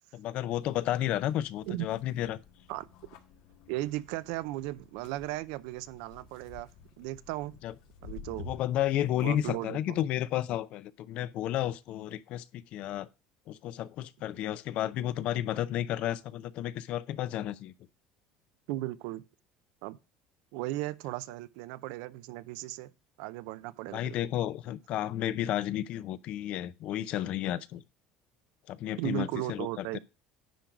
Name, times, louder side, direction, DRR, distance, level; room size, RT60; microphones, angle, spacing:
voice 1, 0.1-2.4 7.6-7.7 8.4-13.1 13.5-17.7 23.9-27.8 28.7-30.0, left 12 dB, 55° left, 0.6 m, -32 dB
sound 1, 0.6-9.6, left 4 dB, 85° left, 1.5 m, -52 dB
voice 2, 3.7-6.7 7.0-7.5 8.0-8.5 9.2-10.0 18.7-19.3 19.8-20.0 20.5-22.9 23.2-24.2 29.0-30.0, right 17 dB, 80° right, 0.5 m, -36 dB
10.0 x 3.8 x 5.9 m
cardioid pair, 130°, 2 cm